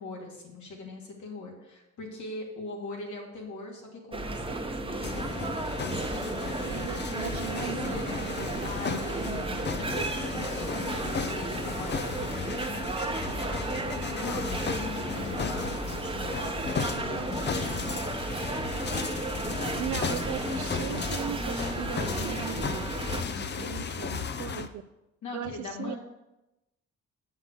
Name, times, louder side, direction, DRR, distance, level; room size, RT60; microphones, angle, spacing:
voice 1, 0.0-5.6 5.9-6.9 7.8-9.5 9.8-13.5 14.0-17.9 23.2-24.0 25.2-26.0, left 3 dB, 70° left, 0 dB, 2.4 m, -41 dB
sound 1, 4.1-23.2, right 2 dB, 20° right, 0.9 m, -34 dB
sound 2, 5.0-24.7, left 6 dB, 35° left, 0.6 m, -35 dB
voice 2, 6.6-9.0 9.2-9.4 19.8-22.9 23.4-24.8 25.3-25.9, right 10 dB, 70° right, 13 dB, 0.6 m, -38 dB
7.9 x 5.6 x 6.3 m, 0.96 s
cardioid pair, 90°, 30 cm